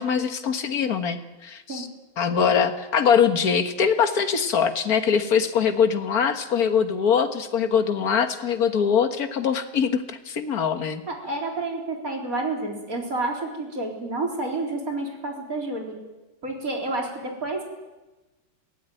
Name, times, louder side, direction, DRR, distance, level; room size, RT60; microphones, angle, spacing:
voice 1, 0.0-1.9 2.2-11.0, left 7 dB, 50° left, 8 dB, 1.8 m, -22 dB
voice 2, 11.1-16.0 16.4-17.6, right 2 dB, 40° right, 1 dB, 4.3 m, -29 dB
22.5 x 16.5 x 9.2 m, 1.1 s
omnidirectional pair, 2.2 m